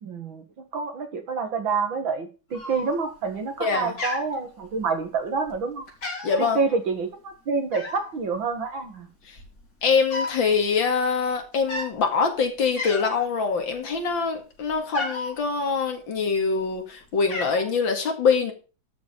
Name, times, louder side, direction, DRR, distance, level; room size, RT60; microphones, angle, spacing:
voice 1, 0.0-5.9 6.4-9.1, right 4 dB, 70° right, 7 dB, 2.6 m, -28 dB
Cat, 2.5-3.2 3.5-3.7 4.0-5.0 5.5-5.6 5.9-6.5 7.7-8.1 8.9-9.0 9.2-10.4 10.7-10.9 11.6-11.9 12.4-12.5 12.8-13.3 13.7-15.4 16.2-16.8 17.0-17.7, left 2 dB, 50° left, 4.2 m, -33 dB
voice 2, 3.6-4.0 6.2-6.6 9.3-9.4 9.8-18.5, left 5 dB, 70° left, 4 dB, 2.9 m, -24 dB
12.5 x 5.2 x 7.1 m, 0.34 s
omnidirectional pair, 2.2 m